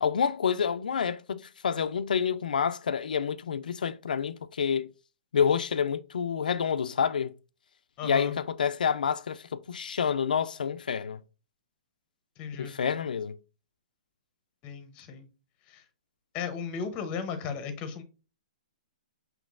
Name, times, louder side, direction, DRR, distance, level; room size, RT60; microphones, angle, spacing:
voice 1, 0.0-4.9 5.3-7.3 8.0-11.2 12.6-13.3, left 7 dB, 90° left, 0.4 m, -28 dB
voice 2, 8.0-8.4 12.4-12.8 14.6-15.3 15.7-15.8 16.3-18.0, left 6 dB, 25° left, 0.7 m, -35 dB
5.2 x 3.0 x 2.4 m
hypercardioid pair, 145°, 4 cm